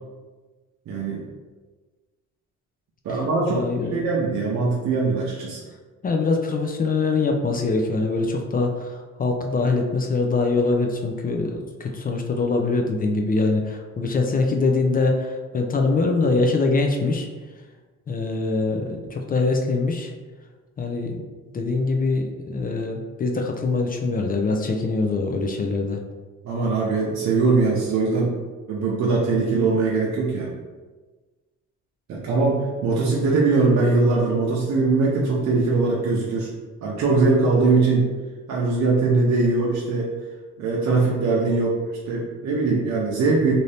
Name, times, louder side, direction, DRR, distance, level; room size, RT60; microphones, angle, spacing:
voice 1, 0.9-1.2 3.0-3.6 3.9-5.6 26.4-28.3 28.7-30.5 32.1-36.5 36.8-38.1 38.5-40.1 40.6-43.5, right 3 dB, 65° right, -4 dB, 0.6 m, -21 dB
voice 2, 3.5-4.0 6.0-17.3 18.1-20.1 20.8-21.2 21.5-26.0, left 3 dB, 30° left, 2 dB, 0.4 m, -23 dB
2.6 x 2.6 x 3.3 m, 1.3 s
cardioid pair, 90°, 30 cm